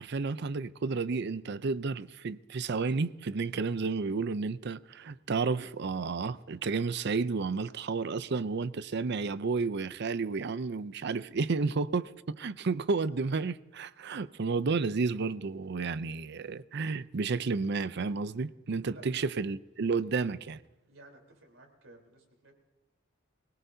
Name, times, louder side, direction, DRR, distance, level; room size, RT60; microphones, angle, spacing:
voice 1, 0.0-20.6, right 4 dB, 55° right, 0.5 m, -31 dB
voice 2, 20.9-22.5, right 1 dB, 80° right, 3.8 m, -54 dB
24.0 x 17.5 x 2.7 m
head